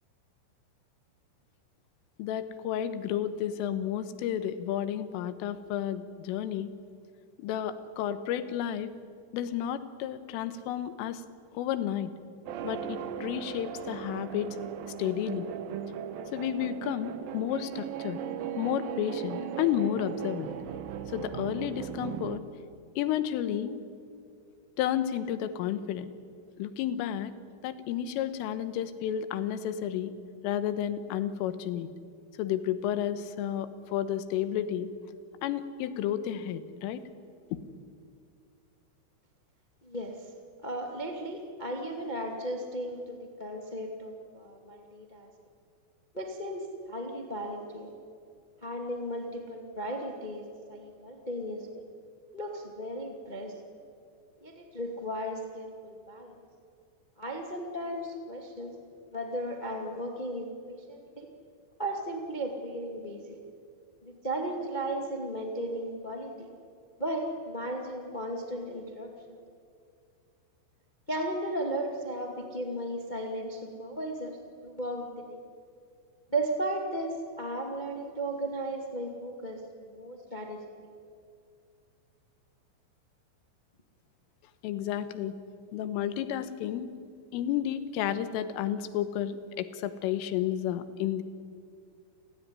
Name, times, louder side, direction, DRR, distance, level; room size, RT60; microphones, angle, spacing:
voice 1, 2.2-6.7 7.4-8.9 9.3-11.2 11.6-12.1 12.6-14.6 15.0-15.5 16.3-18.2 18.6-20.5 21.1-22.4 22.9-23.8 24.8-26.1 26.6-27.4 27.6-30.1 30.4-31.9 32.4-34.9 35.4-37.0 37.5-37.6 84.6-85.4 85.7-86.9 87.3-91.2, left 10 dB, 85° left, 12 dB, 3.7 m, -31 dB
sound 1, 12.5-22.4, right 8 dB, 75° right, 2.1 m, -38 dB
voice 2, 39.8-40.3 40.6-45.3 46.1-47.9 48.6-51.8 52.3-53.5 54.4-56.4 57.2-58.7 59.1-61.3 61.8-63.4 64.0-66.5 67.0-69.4 71.1-74.4 74.6-75.4 76.3-80.6, right 1 dB, 60° left, 2 dB, 0.4 m, -35 dB
29.5 x 18.5 x 9.9 m, 2.4 s
omnidirectional pair, 5.7 m